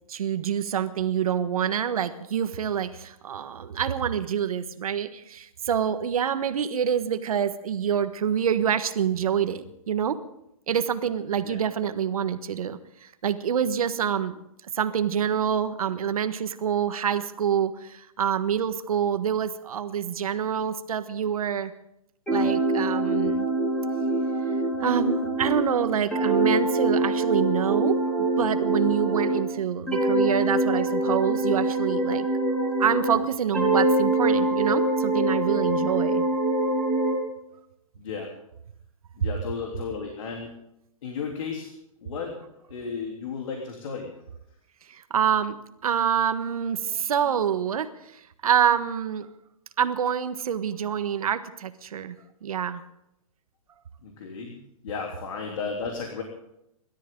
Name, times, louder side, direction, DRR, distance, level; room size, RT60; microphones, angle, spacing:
voice 1, 0.1-10.2 10.7-14.4 14.7-21.7 22.3-23.5 24.8-32.3 32.8-36.3 44.9-45.6 45.8-49.3 49.8-52.2 52.4-52.8, right 8 dB, 85° right, 10 dB, 1.4 m, -26 dB
sound 1, 22.3-29.5 29.9-33.2 33.5-37.2, right 2 dB, 5° left, 4.3 m, -24 dB
voice 2, 38.0-38.3 39.2-40.5 41.0-41.7 42.0-42.4 42.7-44.1 47.2-47.3 54.0-56.2, left 5 dB, 65° left, 1 dB, 3.5 m, -34 dB
27.0 x 13.5 x 3.9 m, 0.81 s
hypercardioid pair, 155°, 18 cm